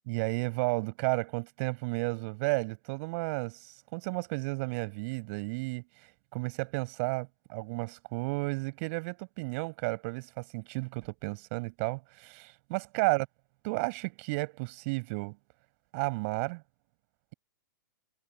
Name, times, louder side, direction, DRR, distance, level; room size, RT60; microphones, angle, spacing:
voice 1, 0.1-5.8 6.3-13.3 13.6-15.4 15.9-16.6, right 28 dB, 40° right, 6.3 m, -32 dB
figure-of-eight pair, 105°, 11 cm